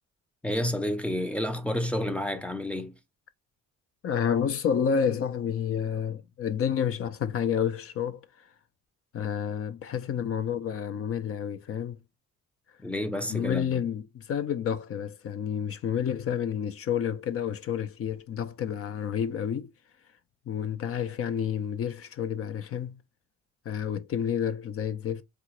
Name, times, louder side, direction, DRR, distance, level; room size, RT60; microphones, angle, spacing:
voice 1, 0.4-2.9 12.8-13.8, left 1 dB, 5° left, 0.6 m, -30 dB
voice 2, 4.0-8.3 9.1-12.0 13.3-19.7 20.5-23.0 23.7-25.2, left 8 dB, 50° left, 0.5 m, -29 dB
3.8 x 2.4 x 2.9 m
cardioid pair, 90°, 30 cm